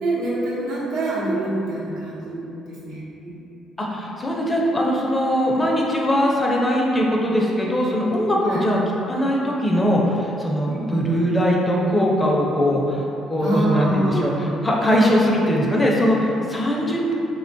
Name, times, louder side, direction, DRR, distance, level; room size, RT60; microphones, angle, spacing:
voice 1, 0.0-3.4 8.5-8.7 10.7-11.0 13.4-14.5, right 2 dB, 90° right, -8 dB, 0.8 m, -26 dB
voice 2, 3.8-17.1, equal, 20° left, -3 dB, 0.4 m, -21 dB
3.3 x 2.2 x 2.6 m, 2.8 s
cardioid pair, 95°, 0 cm